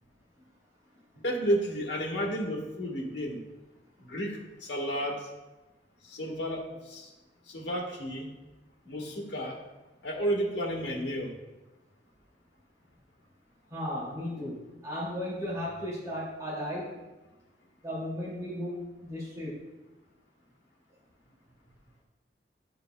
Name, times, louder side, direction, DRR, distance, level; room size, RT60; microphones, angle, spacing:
voice 1, 1.1-3.4 4.0-5.3 6.1-7.1 7.5-8.3 8.8-9.6 10.0-11.3, equal, 85° left, -1 dB, 1.4 m, -32 dB
voice 2, 13.7-16.9 17.8-19.6, left 1 dB, 20° right, -7 dB, 2.3 m, -35 dB
11.5 x 6.7 x 2.2 m, 1.1 s
head